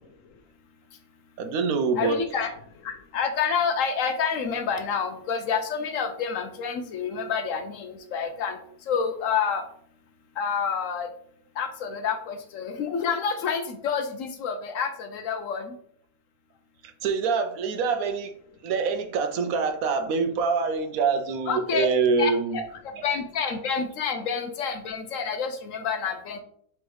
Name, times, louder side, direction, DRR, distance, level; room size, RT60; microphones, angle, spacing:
voice 1, 1.4-2.2 17.0-18.3 18.6-22.7 26.1-26.2, right 5 dB, 75° right, 7 dB, 1.0 m, -25 dB
voice 2, 2.0-2.5 2.8-8.6 8.9-9.6 10.4-11.1 11.6-15.8 21.5-21.9 22.2-22.3 23.0-26.4, left 6 dB, 65° left, 6 dB, 0.9 m, -28 dB
3.5 x 3.1 x 4.6 m, 0.63 s
omnidirectional pair, 1.6 m